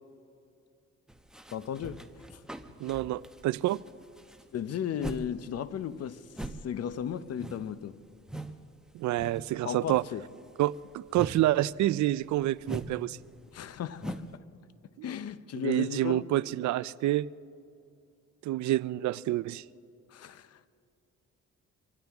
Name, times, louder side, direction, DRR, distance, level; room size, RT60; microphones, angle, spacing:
sound 1, 1.1-5.3 5.6-8.6 8.9-9.6 9.9-14.4, right 1 dB, ahead, 0.9 m, -42 dB
voice 1, 1.5-2.0 2.3-2.4 4.5-6.2 6.6-8.0 9.6-10.2 13.5-14.4 15.0-16.2 20.1-20.7, left 9 dB, 55° left, 0.7 m, -35 dB
voice 2, 2.8-3.8 8.9-10.0 10.6-13.2 15.5-17.3 18.4-19.6, right 15 dB, 70° right, 0.4 m, -28 dB
25.0 x 16.0 x 3.5 m
cardioid pair, 90°, 30 cm